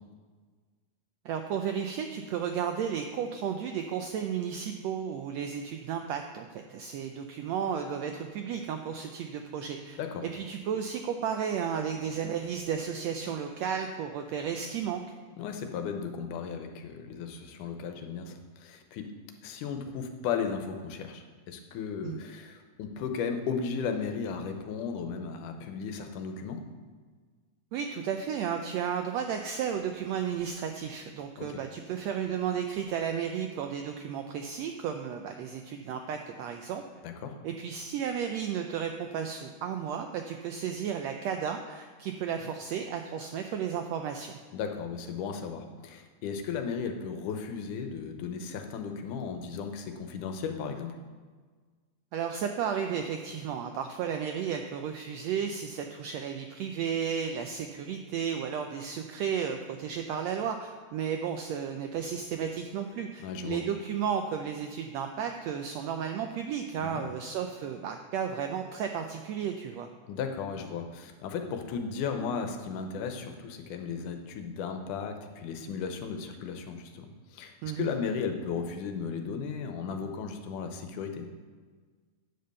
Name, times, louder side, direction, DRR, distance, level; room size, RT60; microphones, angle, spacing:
voice 1, 1.2-15.0 22.0-22.2 27.7-36.8 37.4-44.3 52.1-69.9 77.6-77.9, right 7 dB, 85° right, 5 dB, 1.5 m, -33 dB
voice 2, 15.4-19.1 19.4-26.6 31.4-31.5 37.0-37.4 44.5-51.0 63.2-63.6 66.8-67.1 70.1-81.3, left 6 dB, 90° left, 6 dB, 2.3 m, -35 dB
9.7 x 5.3 x 6.6 m, 1.5 s
omnidirectional pair, 3.6 m